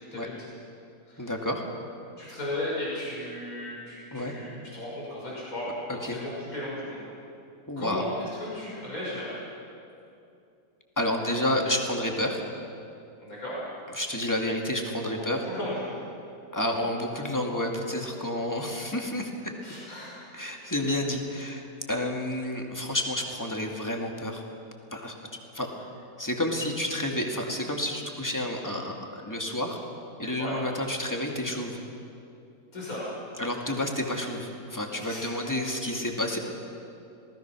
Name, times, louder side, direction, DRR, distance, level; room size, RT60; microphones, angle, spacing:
voice 1, 1.2-1.6 4.1-4.3 6.0-6.2 7.7-8.1 11.0-12.4 13.9-15.4 16.5-19.5 20.3-24.5 24.9-25.1 25.5-25.7 26.2-29.8 30.2-31.8 33.4-36.4, left 1 dB, 10° left, 1 dB, 2.3 m, -30 dB
voice 2, 2.2-5.7 6.0-7.1 7.8-8.1 8.4-9.4 13.2-13.6 15.2-16.0 19.6-20.2 30.4-30.6 32.7-33.0 35.0-35.2, left 1 dB, 60° left, -6 dB, 6.5 m, -35 dB
27.0 x 19.5 x 6.3 m, 2.6 s
omnidirectional pair, 1.6 m